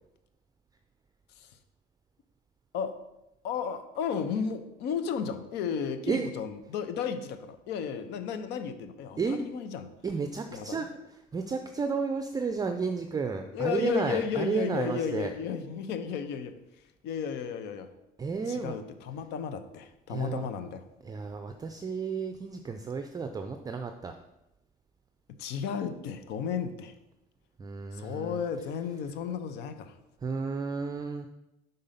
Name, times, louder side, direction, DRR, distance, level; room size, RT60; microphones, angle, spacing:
voice 1, 3.4-9.9 10.5-10.9 13.5-16.5 17.0-17.9 18.5-20.8 25.4-26.9 27.9-30.0, left 7 dB, 85° left, 9 dB, 0.7 m, -33 dB
voice 2, 10.0-15.3 18.2-18.7 20.1-20.5 21.0-24.2 27.6-28.4 30.2-31.3, right 5 dB, 20° right, 6 dB, 0.4 m, -32 dB
5.2 x 3.9 x 5.6 m, 0.91 s
cardioid pair, 110°, 17 cm